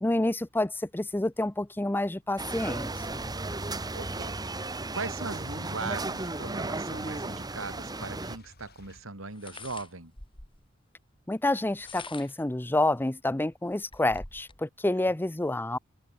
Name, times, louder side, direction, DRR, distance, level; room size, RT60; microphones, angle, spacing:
voice 1, 0.0-3.3 11.3-15.8, left 1 dB, 10° left, 0.6 m, -28 dB
sound 1, 2.4-8.4, right 2 dB, 20° right, 1.4 m, -35 dB
sound 2, 3.9-9.0, left 2 dB, 50° left, 4.6 m, -55 dB
voice 2, 3.9-4.3 4.9-10.1, right 3 dB, 80° right, 3.5 m, -39 dB
sound 3, 8.0-8.1 9.3-10.7 11.6-12.5 13.1-13.2 13.5-14.6, left 3 dB, 25° left, 3.8 m, -46 dB
open air
head